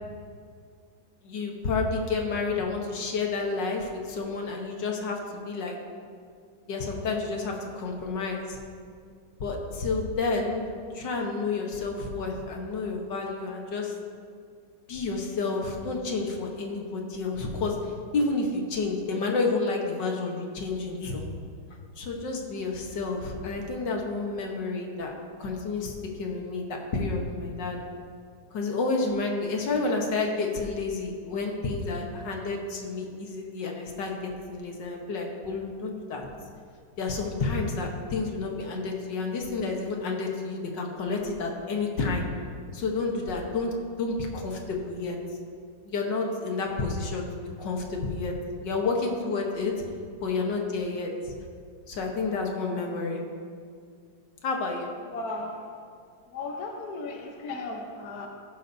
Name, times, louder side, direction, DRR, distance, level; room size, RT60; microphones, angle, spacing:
voice 1, 1.2-5.8 6.7-8.6 9.4-10.7 10.9-13.9 14.9-21.2 22.0-25.1 25.4-26.7 26.9-27.8 28.5-36.3 37.0-42.3 42.7-45.2 45.9-48.3 48.6-49.7 50.2-51.3 51.9-53.2 54.4-54.9, left 3 dB, 75° left, 1 dB, 1.9 m, -30 dB
voice 2, 55.1-55.6 56.3-58.3, left 2 dB, 60° left, 1 dB, 1.4 m, -35 dB
15.0 x 11.0 x 2.7 m, 2.2 s
omnidirectional pair, 2.0 m